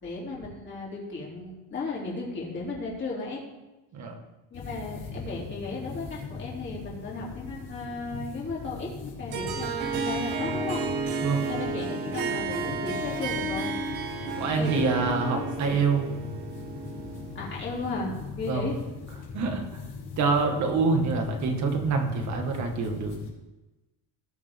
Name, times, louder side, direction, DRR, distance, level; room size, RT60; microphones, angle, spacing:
voice 1, 0.0-3.4 4.5-10.8 11.4-13.7 14.4-15.8 17.3-18.8, left 3 dB, 25° left, -4 dB, 3.0 m, -35 dB
sound 1, 4.5-23.3, left 4 dB, 90° left, 3.6 m, -40 dB
Harp, 9.3-17.7, right 4 dB, 65° right, 1.7 m, -32 dB
voice 2, 14.4-16.1 18.4-18.7 19.3-19.8 20.2-23.2, right 4 dB, 40° right, 3 dB, 1.8 m, -26 dB
19.0 x 6.5 x 3.6 m, 1.1 s
cardioid pair, 175°, 41 cm